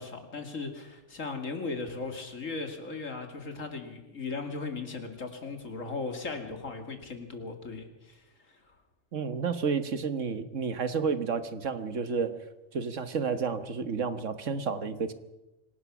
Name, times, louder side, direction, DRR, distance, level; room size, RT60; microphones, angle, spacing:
voice 1, 0.0-8.7, left 4 dB, 85° left, 5 dB, 2.9 m, -37 dB
voice 2, 9.1-12.4 12.7-15.1, right 5 dB, 75° right, 10 dB, 1.6 m, -31 dB
26.0 x 18.5 x 6.1 m, 1.0 s
omnidirectional pair, 1.3 m